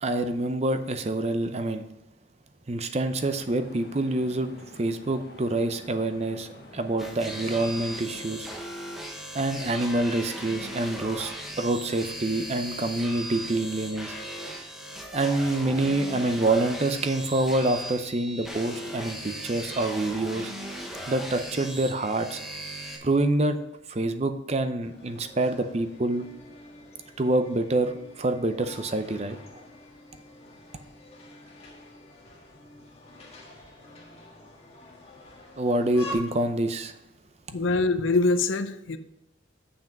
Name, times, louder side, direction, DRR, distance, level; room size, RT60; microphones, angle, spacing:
voice 1, 0.0-1.9 2.7-4.5 4.8-8.5 9.3-14.1 15.1-20.5 21.1-22.4 23.0-23.6 23.9-26.3 27.2-29.4 35.6-37.0, right 2 dB, 35° right, 8 dB, 0.6 m, -26 dB
sound 1, 3.2-8.3, left 1 dB, 55° left, 1.2 m, -48 dB
sound 2, 7.0-23.0, right 1 dB, ahead, 1.0 m, -38 dB
sound 3, 24.8-36.1, left 1 dB, 30° left, 1.5 m, -47 dB
voice 2, 37.5-39.0, left 3 dB, 80° left, 11 dB, 0.6 m, -24 dB
7.1 x 6.0 x 5.2 m, 0.89 s
head